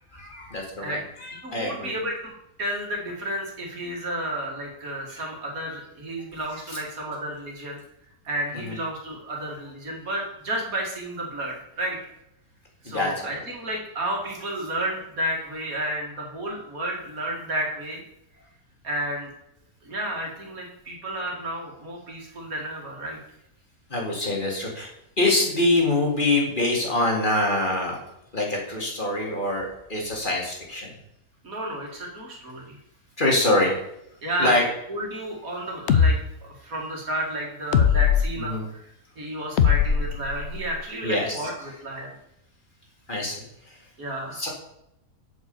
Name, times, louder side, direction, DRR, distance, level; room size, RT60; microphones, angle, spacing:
voice 1, 0.1-1.9 8.6-8.8 12.8-13.4 23.9-24.9 25.2-28.0 28.3-30.9 33.2-33.7 34.4-34.6 38.5-38.7 41.0-41.5 43.1-43.8 44.3-44.5, left 2 dB, 35° left, -1 dB, 2.1 m, -25 dB
voice 2, 1.4-2.3 2.6-7.8 8.2-12.0 12.8-18.0 18.8-19.3 19.8-23.2 31.4-32.8 33.5-33.7 34.2-34.6 34.9-38.8 39.2-42.1 44.0-44.4, right 1 dB, 75° right, -1 dB, 2.6 m, -31 dB
sound 1, 35.9-36.1 37.7-38.3 39.6-40.7, left 7 dB, 60° left, 0.8 m, -19 dB
7.8 x 5.0 x 7.0 m, 0.81 s
omnidirectional pair, 1.5 m